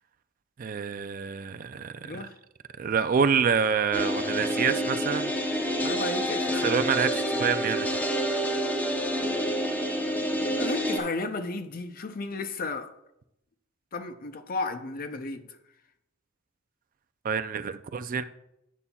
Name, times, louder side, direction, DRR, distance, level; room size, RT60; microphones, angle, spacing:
voice 1, 0.6-2.3 2.8-5.3 6.6-8.0 17.2-18.2, right 6 dB, 45° right, 11 dB, 0.4 m, -27 dB
voice 2, 2.0-2.3 5.8-6.6 10.1-12.9 13.9-15.6, left 3 dB, 45° left, 9 dB, 0.6 m, -34 dB
sound 1, 3.9-11.0, equal, 10° left, 0.7 m, -28 dB
11.0 x 7.2 x 2.3 m, 0.83 s
head